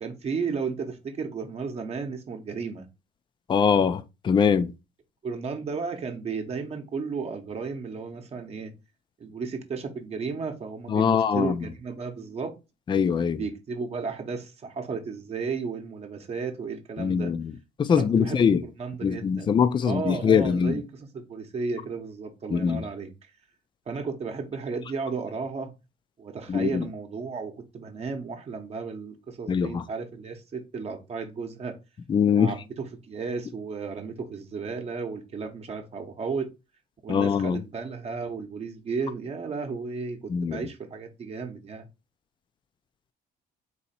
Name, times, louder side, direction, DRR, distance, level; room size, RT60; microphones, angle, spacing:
voice 1, 0.0-2.9 5.2-8.7 9.2-12.5 13.2-17.3 17.9-19.5 19.8-23.1 23.9-25.7 26.2-31.8 32.3-36.5 37.0-41.9, right 5 dB, 40° right, 0.9 m, -34 dB
voice 2, 3.5-4.7 10.9-11.5 12.9-13.4 17.0-17.5 17.8-18.6 19.0-20.8 22.5-22.9 26.5-26.8 29.5-29.8 32.1-32.5 37.1-37.6 40.3-40.6, left 7 dB, 30° left, 0.4 m, -23 dB
4.1 x 2.8 x 4.2 m
cardioid pair, 110°, 17 cm